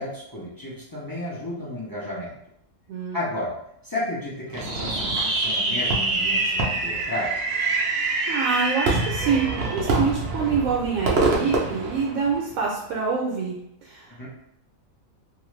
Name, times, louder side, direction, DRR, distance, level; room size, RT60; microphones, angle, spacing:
voice 1, 0.0-2.4 3.1-3.6 3.8-7.7 14.1-14.3, left 1 dB, 35° left, -6 dB, 0.3 m, -32 dB
Fireworks, 4.5-12.7, right 3 dB, 60° right, 0.7 m, -25 dB
voice 2, 8.3-13.5 13.8-14.3, right 5 dB, 80° right, -3 dB, 1.0 m, -26 dB
2.6 x 2.4 x 3.1 m, 0.77 s
omnidirectional pair, 1.4 m